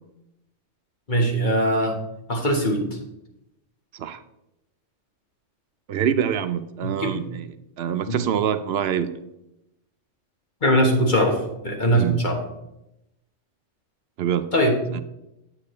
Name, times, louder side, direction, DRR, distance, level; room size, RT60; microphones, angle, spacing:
voice 1, 1.1-2.0 2.3-2.9 6.8-7.2 8.1-8.2 10.6-12.4 14.5-14.8, equal, 40° left, 1 dB, 1.5 m, -21 dB
voice 2, 5.9-9.1 11.9-12.2 14.2-14.5 14.9-15.0, right 9 dB, 65° right, 12 dB, 0.7 m, -25 dB
8.6 x 8.5 x 3.2 m, 0.87 s
omnidirectional pair, 1.3 m